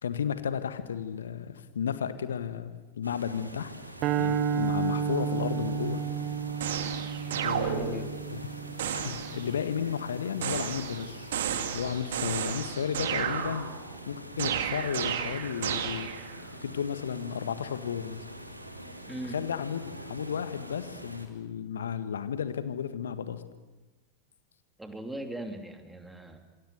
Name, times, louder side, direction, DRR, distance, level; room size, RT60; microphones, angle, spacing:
voice 1, 0.0-3.7 4.2-6.0 7.3-8.4 8.9-11.3 11.7-13.7 14.0-16.1 16.6-18.3 19.3-23.4, left 7 dB, 65° left, 11 dB, 1.7 m, -33 dB
sound 1, 3.0-21.3, right 1 dB, 85° right, 2.7 m, -45 dB
sound 2, 4.0-10.4, right 8 dB, 40° right, 1.2 m, -32 dB
sound 3, 6.6-8.3 8.8-9.5 10.4-14.0 14.4-16.4, right 8 dB, 60° right, 2.2 m, -33 dB
voice 2, 7.8-8.1 19.1-19.4 24.8-26.4, right 1 dB, 5° right, 5 dB, 3.0 m, -39 dB
27.5 x 25.0 x 7.0 m, 1.2 s
figure-of-eight pair, 90°, 0 cm